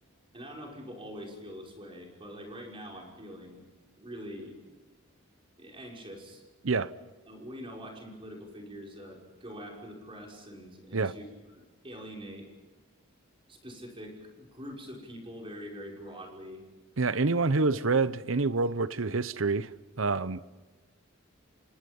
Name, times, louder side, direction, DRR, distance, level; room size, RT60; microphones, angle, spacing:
voice 1, 0.3-3.7 4.0-4.6 5.6-6.4 7.3-11.2 11.5-12.5 13.5-16.6, equal, 25° right, 5.8 m, -44 dB
voice 2, 17.0-19.7 20.0-20.4, right 3 dB, 75° right, 0.9 m, -27 dB
29.0 x 25.5 x 5.4 m
head